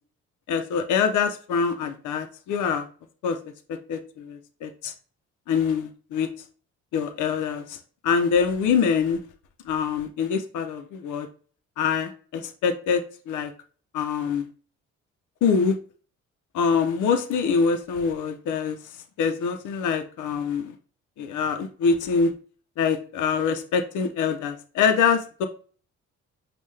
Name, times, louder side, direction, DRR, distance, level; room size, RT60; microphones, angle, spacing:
voice 1, 0.5-2.9 3.2-3.4 3.7-4.9 5.5-6.3 6.9-9.2 9.6-11.3 11.8-13.5 13.9-14.5 15.4-15.8 16.5-18.8 19.2-20.7 21.2-22.3 22.8-25.5, left 6 dB, 75° left, 7 dB, 0.8 m, -24 dB
5.4 x 2.5 x 3.3 m, 0.41 s
cardioid pair, 90°, 30 cm